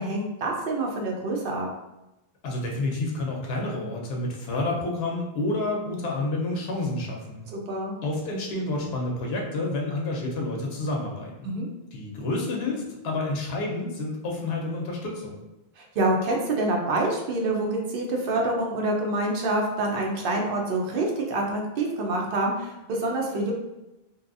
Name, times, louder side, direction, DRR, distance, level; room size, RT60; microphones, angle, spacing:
voice 1, 0.0-1.7 7.5-7.9 11.4-11.7 15.8-23.5, right 2 dB, 65° right, 0 dB, 0.7 m, -26 dB
voice 2, 2.4-7.4 8.0-11.5 11.9-15.4, left 2 dB, 80° left, -1 dB, 0.8 m, -29 dB
2.7 x 2.2 x 2.5 m, 0.95 s
omnidirectional pair, 1.0 m